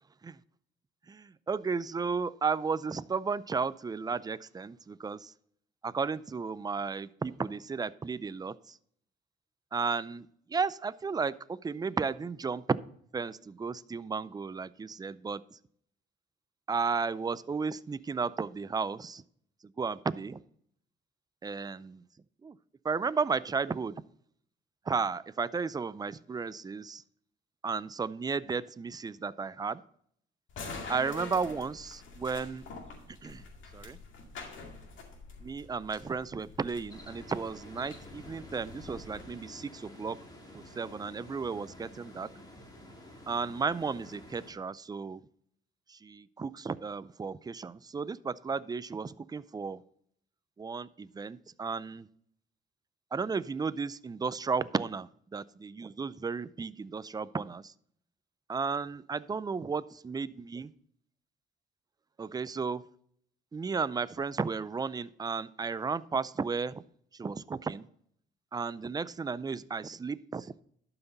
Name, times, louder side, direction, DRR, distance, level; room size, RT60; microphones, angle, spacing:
voice 1, 1.1-5.3 5.8-8.8 9.7-12.8 13.1-15.6 16.7-19.2 19.8-20.4 21.4-22.0 22.4-22.6 22.8-24.0 24.9-27.0 27.6-29.8 30.9-32.6 33.2-33.4 33.7-34.0 35.4-40.2 40.5-42.3 43.3-45.2 45.9-49.8 50.6-52.1 53.1-57.7 58.5-59.8 60.1-60.6 62.2-62.8 63.5-66.8 67.1-67.9 68.5-70.5, right 5 dB, 20° right, 17 dB, 0.4 m, -34 dB
sound 1, 30.5-39.2, left 3 dB, 75° left, 2.3 m, -46 dB
sound 2, 36.9-44.5, left 1 dB, 20° left, 2.3 m, -50 dB
11.5 x 5.9 x 4.0 m, 0.65 s
cardioid pair, 90°, 20 cm